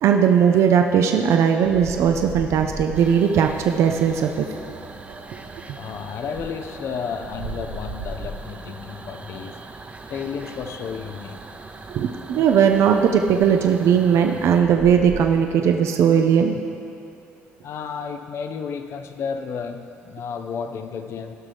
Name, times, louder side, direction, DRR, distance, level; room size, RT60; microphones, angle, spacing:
voice 1, 0.0-4.5 11.9-16.6, right 7 dB, 65° right, 4 dB, 0.5 m, -18 dB
sound 1, 1.6-6.6 7.0-8.5 9.3-10.2 10.9-11.3 11.8-11.9 12.5-12.8 14.1-14.2 14.5-15.3, right 2 dB, 80° right, 1.3 m, -37 dB
sound 2, 2.9-14.6, right 3 dB, 25° right, 0.7 m, -41 dB
voice 2, 5.8-9.6 10.1-11.5 17.6-21.4, left 6 dB, 60° left, 7 dB, 0.5 m, -32 dB
15.0 x 6.1 x 3.4 m, 2.6 s
supercardioid pair, 70°, 5 cm